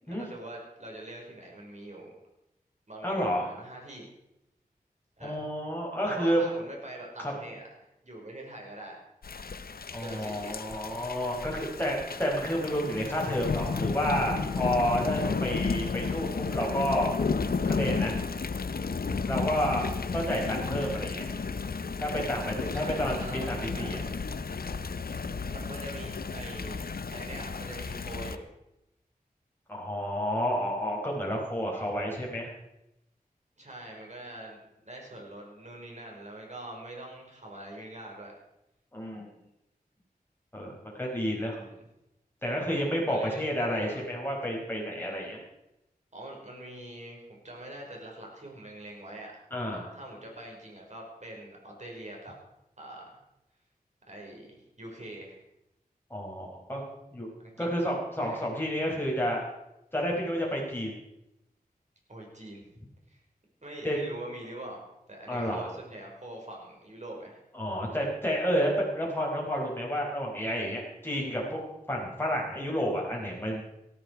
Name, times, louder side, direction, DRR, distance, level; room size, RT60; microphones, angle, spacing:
voice 1, 0.0-2.1 2.9-4.1 5.2-5.4 6.1-7.7 8.0-9.0 10.0-10.6 22.7-24.0 25.5-26.8 27.1-28.5 31.7-31.9 33.6-38.3 41.5-41.8 43.1-43.5 43.7-44.1 46.1-49.3 49.9-52.3 52.8-53.2 54.1-55.4 57.4-57.7 58.2-58.4 62.1-62.7 63.1-63.2 63.6-67.4, right 1 dB, 50° right, -1 dB, 5.5 m, -43 dB
voice 2, 3.0-3.5 5.2-6.5 7.2-7.3 9.9-17.1 17.6-18.2 19.3-19.8 20.1-21.3 22.0-24.0 29.7-32.5 38.9-39.3 40.5-41.6 42.4-45.4 49.5-49.9 56.1-56.8 57.1-57.3 57.6-59.4 59.9-61.0 63.8-64.0 65.3-65.7 67.5-73.6, equal, 15° left, -2 dB, 4.6 m, -30 dB
Thunder / Rain, 9.2-28.4, left 4 dB, 75° left, 0.8 m, -33 dB
18.0 x 13.0 x 4.9 m, 0.88 s
wide cardioid pair, 60°, 16 cm